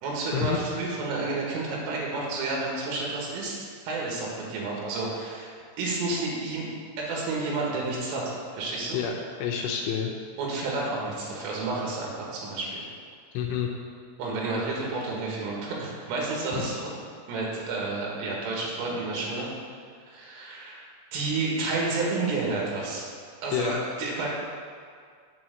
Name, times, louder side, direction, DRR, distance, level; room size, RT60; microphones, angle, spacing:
voice 1, 0.0-3.6 3.9-6.6 7.0-9.0 10.4-12.8 14.2-16.9 17.3-19.5 20.1-20.8 21.1-23.1 23.4-24.3, right 3 dB, 80° right, -3 dB, 4.3 m, -30 dB
voice 2, 9.4-10.1 13.3-13.7 16.5-16.7 23.5-23.8, left 8 dB, 80° left, 0 dB, 3.0 m, -28 dB
9.2 x 4.7 x 7.7 m, 2.2 s
omnidirectional pair, 5.8 m